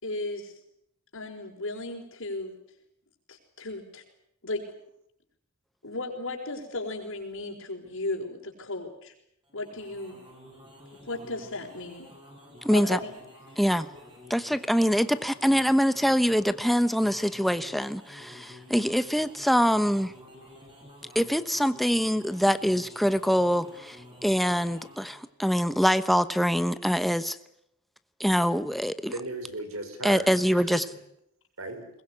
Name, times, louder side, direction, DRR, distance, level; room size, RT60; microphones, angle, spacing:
voice 1, 0.0-0.5 1.1-2.5 3.3-4.0 4.4-4.6 5.8-9.1 9.5-10.2 11.0-12.1 12.7-13.1, left 2 dB, 70° left, -4 dB, 5.0 m, -35 dB
sound 1, 9.4-25.3, equal, 25° right, 7.9 m, -51 dB
voice 2, 12.6-13.0 13.6-13.9 14.3-20.1 21.1-24.0 24.2-27.4 28.2-29.1 30.0-30.8, equal, ahead, 12 dB, 0.9 m, -24 dB
voice 3, 29.1-30.8 31.6-31.9, right 2 dB, 70° right, 8 dB, 5.3 m, -37 dB
22.5 x 21.0 x 9.7 m, 0.74 s
head